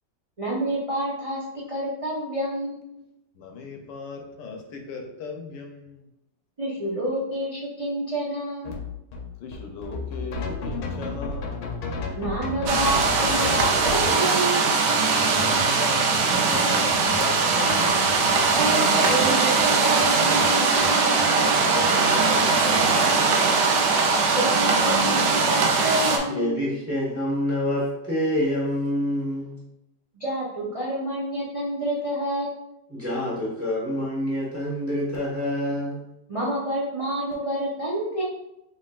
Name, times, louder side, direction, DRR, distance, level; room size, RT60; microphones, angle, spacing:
voice 1, 0.4-1.4 1.7-2.8 6.6-8.8 12.2-14.7 18.5-20.6 24.3-26.6 30.1-32.5 36.3-38.2, right 1 dB, 40° right, -7 dB, 0.5 m, -28 dB
voice 2, 3.4-6.0 9.4-11.6 15.2-18.0 21.4-23.4, left 4 dB, 90° left, 3 dB, 1.4 m, -37 dB
sound 1, 8.6-14.1, left 3 dB, 70° left, 1.2 m, -32 dB
sound 2, 12.7-26.2, right 4 dB, 85° right, 1.2 m, -21 dB
sound 3, 14.8-22.9, right 1 dB, 65° right, 1.6 m, -35 dB
voice 3, 26.3-29.6 32.9-36.0, equal, 10° right, -6 dB, 1.0 m, -27 dB
4.4 x 3.3 x 2.4 m, 0.86 s
omnidirectional pair, 1.8 m